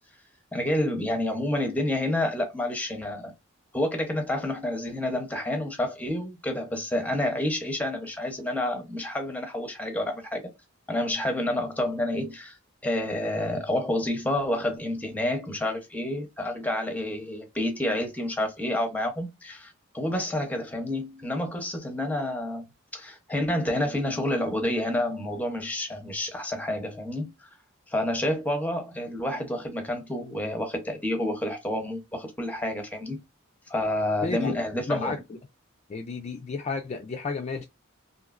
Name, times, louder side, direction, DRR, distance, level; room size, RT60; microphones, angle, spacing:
voice 1, 0.5-3.3 3.7-10.4 10.9-12.6 12.8-22.6 22.9-27.5 27.9-33.2 33.7-35.1, left 1 dB, 10° left, 0.7 m, -29 dB
voice 2, 34.2-34.6 34.9-35.4 35.9-37.7, left 4 dB, 35° left, 0.3 m, -32 dB
3.0 x 2.7 x 2.4 m
head